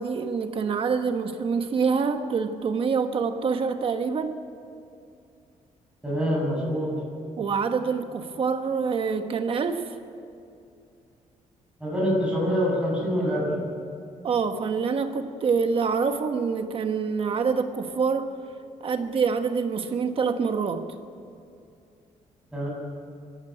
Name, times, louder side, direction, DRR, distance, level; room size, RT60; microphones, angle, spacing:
voice 1, 0.0-4.4 7.4-9.9 14.2-18.3 18.8-20.9, right 5 dB, 45° right, 7 dB, 1.2 m, -26 dB
voice 2, 6.0-6.9 11.8-13.5 22.5-22.7, equal, 5° right, -3 dB, 7.8 m, -25 dB
24.5 x 14.5 x 10.0 m, 2.5 s
cardioid pair, 150°, 13 cm